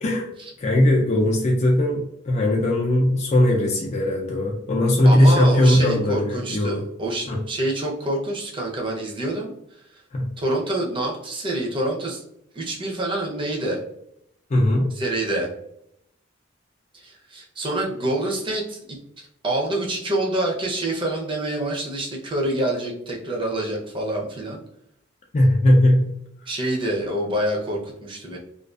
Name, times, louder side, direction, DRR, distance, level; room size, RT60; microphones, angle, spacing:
voice 1, 0.6-6.8 7.3-7.4 10.1-10.3 14.5-14.9 25.3-26.1, left 1 dB, 35° left, -1 dB, 0.4 m, -19 dB
voice 2, 5.0-10.0 10.4-12.2 12.5-13.8 14.9-15.5 16.9-18.8 19.2-24.6 26.5-28.4, right 1 dB, 25° right, -2 dB, 0.6 m, -27 dB
2.5 x 2.3 x 2.3 m, 0.76 s
head